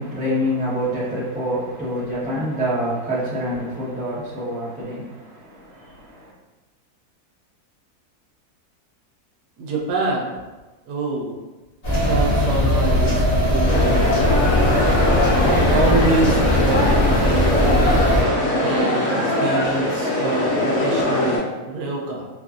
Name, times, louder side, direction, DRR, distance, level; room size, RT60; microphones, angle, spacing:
voice 1, 0.0-6.3, equal, 10° right, -10 dB, 0.4 m, -27 dB
voice 2, 9.6-10.3 10.9-11.4 12.0-13.8 15.4-18.0 18.6-22.3, right 3 dB, 85° right, -1 dB, 1.1 m, -26 dB
sound 1, 11.8-18.2, left 1 dB, 35° left, 0.6 m, -19 dB
sound 2, 13.6-21.4, left 1 dB, 65° left, 1.1 m, -21 dB
2.9 x 2.4 x 2.4 m, 1.2 s
omnidirectional pair, 1.7 m